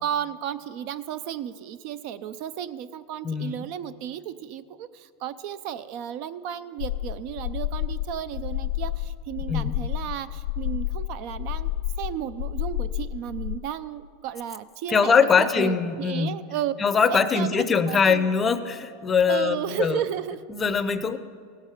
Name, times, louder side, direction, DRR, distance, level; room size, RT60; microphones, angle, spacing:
voice 1, 0.0-11.7 12.0-16.7 17.1-18.3 19.3-20.4, right 10 dB, 55° right, 14 dB, 0.4 m, -33 dB
sound 1, 6.8-13.6, left 13 dB, 80° left, 0.4 m, -30 dB
voice 2, 14.9-16.3 16.8-20.0 20.5-21.2, left 6 dB, 20° left, 11 dB, 0.6 m, -22 dB
16.5 x 7.3 x 4.9 m, 2.1 s
supercardioid pair, 130°, 0 cm